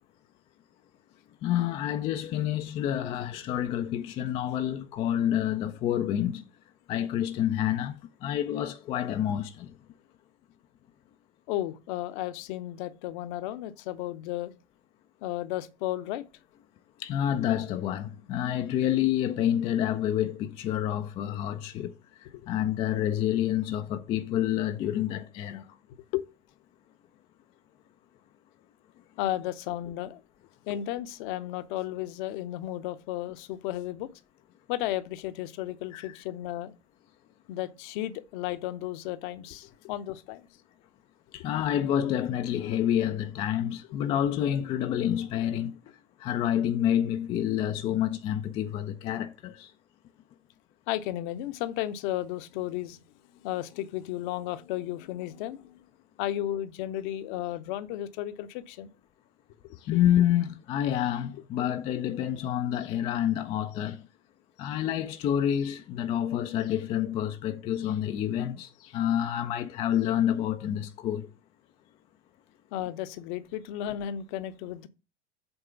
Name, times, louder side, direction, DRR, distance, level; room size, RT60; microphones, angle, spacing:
voice 1, 1.4-6.4 6.9-9.7 17.0-21.9 22.2-25.7 35.9-36.1 41.3-45.8 46.2-49.7 59.8-64.0 64.6-71.3, left 11 dB, 15° left, 0.3 m, -28 dB
voice 2, 11.5-14.5 15.2-16.2 22.3-22.5 26.1-26.2 29.2-30.2 30.7-34.1 34.7-36.7 37.5-40.5 50.9-53.0 53.3-55.8 56.2-58.9 72.7-74.9, left 13 dB, 45° left, 0.7 m, -34 dB
7.9 x 3.7 x 5.6 m
figure-of-eight pair, 85°, 35 cm